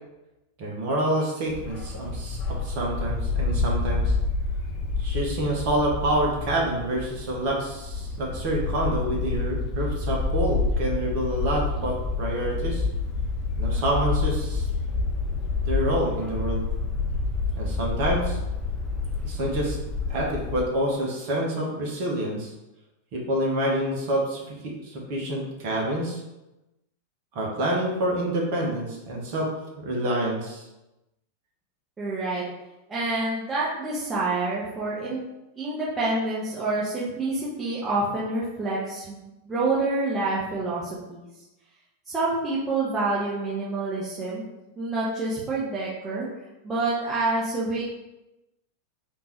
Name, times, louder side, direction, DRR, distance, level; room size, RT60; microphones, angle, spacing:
voice 1, 0.6-4.1 5.0-12.8 13.5-14.6 15.6-16.6 17.6-18.4 19.2-19.8 20.1-22.5 23.1-26.2 27.3-30.6, right 1 dB, 45° right, -2 dB, 0.9 m, -27 dB
Bark, 1.5-20.6, left 3 dB, 25° left, 0.6 m, -28 dB
voice 2, 32.0-32.4 32.9-35.2 35.6-41.2 42.1-44.4 44.8-46.3 46.6-47.8, right 2 dB, 15° right, -8 dB, 1.0 m, -27 dB
3.6 x 2.6 x 4.4 m, 0.98 s
figure-of-eight pair, 90°, 0 cm